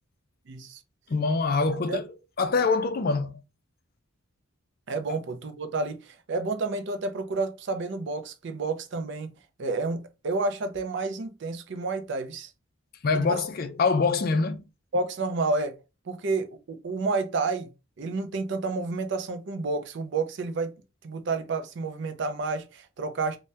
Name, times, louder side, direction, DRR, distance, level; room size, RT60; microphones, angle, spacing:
voice 1, 0.5-0.8 1.9-2.0 4.9-9.3 9.6-12.5 13.1-13.4 14.9-15.8 16.1-17.7 18.0-20.7 21.0-23.4, right 3 dB, 55° right, 0.4 m, -30 dB
voice 2, 1.1-2.0 2.4-3.4 13.0-14.7, left 4 dB, 45° left, 0.4 m, -24 dB
2.7 x 2.1 x 3.3 m
head